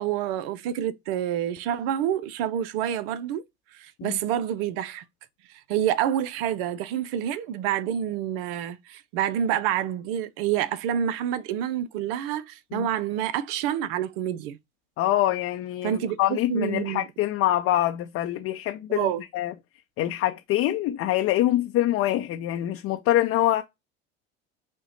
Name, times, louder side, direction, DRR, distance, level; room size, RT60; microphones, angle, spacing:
voice 1, 0.0-3.4 3.7-5.0 5.7-14.6 15.8-17.1 18.9-19.2, right 10 dB, 65° right, 0.6 m, -28 dB
voice 2, 15.0-19.5 20.0-23.6, left 14 dB, 50° left, 0.6 m, -25 dB
5.2 x 2.2 x 4.0 m
hypercardioid pair, 80°, 30 cm